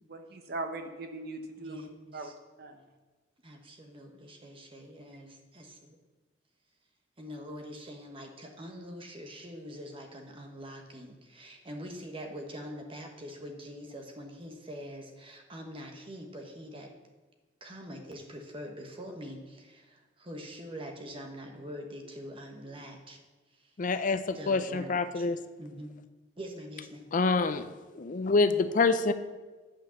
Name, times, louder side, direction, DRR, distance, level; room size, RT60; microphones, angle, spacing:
voice 1, 0.1-1.8 2.1-2.3 2.6-2.8, right 2 dB, 60° right, 6 dB, 0.9 m, -39 dB
voice 2, 1.6-2.3 3.4-6.0 7.2-16.9 17.6-23.2 23.6-23.7 24.3-25.2 25.6-25.9 26.4-27.0, equal, 30° right, 3 dB, 1.3 m, -44 dB
voice 3, 23.8-25.4 27.1-27.7 27.9-29.1, left 3 dB, 45° left, 11 dB, 0.5 m, -26 dB
8.9 x 5.2 x 7.0 m, 1.3 s
head